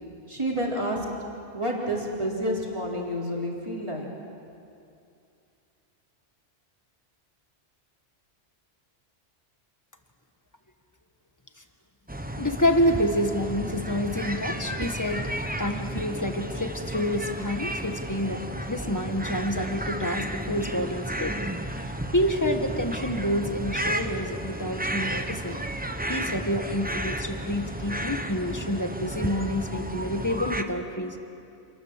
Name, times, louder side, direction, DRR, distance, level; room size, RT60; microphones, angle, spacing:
voice 1, 0.3-1.0 1.5-4.1, equal, 25° right, -2 dB, 3.5 m, -29 dB
sound 1, 12.1-30.6, right 1 dB, 10° right, 0.9 m, -33 dB
voice 2, 12.4-21.5 22.1-25.6 26.1-31.2, left 1 dB, 15° left, 5 dB, 1.4 m, -28 dB
27.5 x 19.5 x 7.6 m, 2.6 s
omnidirectional pair, 1.2 m